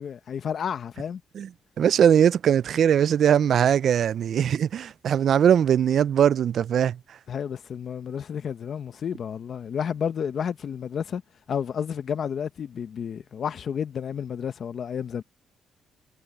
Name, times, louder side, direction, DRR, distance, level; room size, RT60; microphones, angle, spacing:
voice 1, 0.0-1.2 7.3-11.2 11.5-15.2, left 7 dB, 55° left, 1.0 m, -31 dB
voice 2, 1.8-7.0, right 9 dB, 60° right, 0.4 m, -20 dB
cardioid pair, 90°, 0 cm